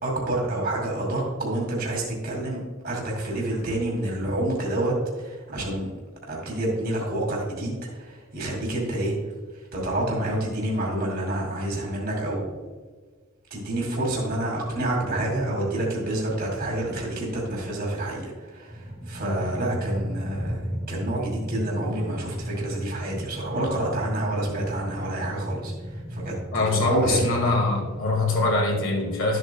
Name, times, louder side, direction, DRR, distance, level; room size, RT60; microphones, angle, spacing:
voice 1, 0.0-5.9 6.3-9.1 9.7-12.6 13.5-20.6 20.9-25.7 26.1-27.2, right 1 dB, 45° right, -2 dB, 2.3 m, -28 dB
sound 1, 18.7-28.8, equal, 5° right, 0.9 m, -35 dB
voice 2, 26.5-29.4, left 2 dB, 60° left, 0 dB, 2.1 m, -23 dB
12.5 x 8.0 x 2.3 m, 1.5 s
head